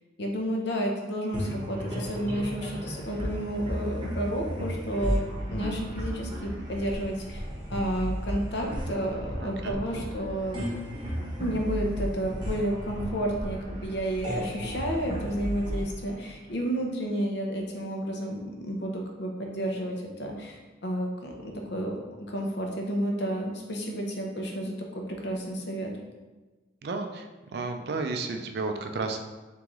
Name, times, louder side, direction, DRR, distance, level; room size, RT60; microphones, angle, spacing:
voice 1, 0.2-7.4 7.7-10.7 11.4-22.0 22.3-25.9, right 1 dB, 65° left, 1 dB, 0.7 m, -31 dB
sound 1, 1.3-17.0, equal, 25° right, 0.9 m, -34 dB
voice 2, 9.4-10.0 26.8-27.3 27.5-29.3, right 3 dB, 55° right, 5 dB, 0.4 m, -32 dB
3.7 x 3.7 x 3.0 m, 1.2 s
head